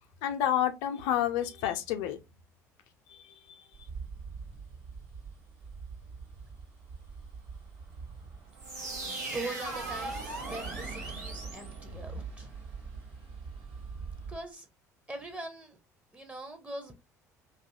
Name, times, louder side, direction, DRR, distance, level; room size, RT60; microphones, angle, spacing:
voice 1, 0.2-2.2 3.1-3.2, left 11 dB, 60° left, 0.5 m, -29 dB
Bus, 3.7-14.4, right 5 dB, 60° right, 1.1 m, -44 dB
sound 1, 8.6-12.4, right 2 dB, 80° right, 0.8 m, -39 dB
voice 2, 9.1-12.5 14.3-14.7 15.1-15.8 16.1-16.9, right 2 dB, 15° right, 0.7 m, -41 dB
2.6 x 2.3 x 2.6 m
figure-of-eight pair, 55°, 9 cm